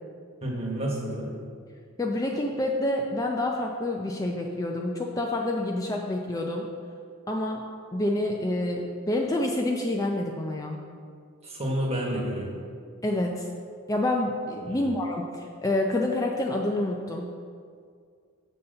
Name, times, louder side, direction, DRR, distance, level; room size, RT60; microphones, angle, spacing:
voice 1, 0.4-1.3 11.4-12.6 14.7-14.9, right 1 dB, 30° right, -2 dB, 1.5 m, -30 dB
voice 2, 2.0-6.7 7.3-7.6 7.9-10.8 13.0-13.5 13.9-17.3, left 1 dB, 15° left, 1 dB, 0.4 m, -28 dB
7.1 x 4.1 x 6.6 m, 2.1 s
head